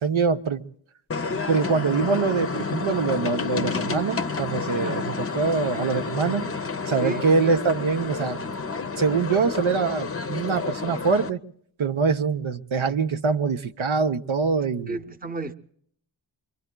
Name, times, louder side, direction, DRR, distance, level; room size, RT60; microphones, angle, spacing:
voice 1, 0.0-0.6 1.5-6.5 6.9-8.4 9.0-11.4 11.8-15.0, right 4 dB, 85° right, 0.8 m, -24 dB
sound 1, 1.1-11.3, left 4 dB, 30° left, 0.6 m, -30 dB
voice 2, 14.9-15.5, right 3 dB, 20° right, 0.8 m, -32 dB
25.0 x 23.5 x 2.2 m
wide cardioid pair, 75°, 46 cm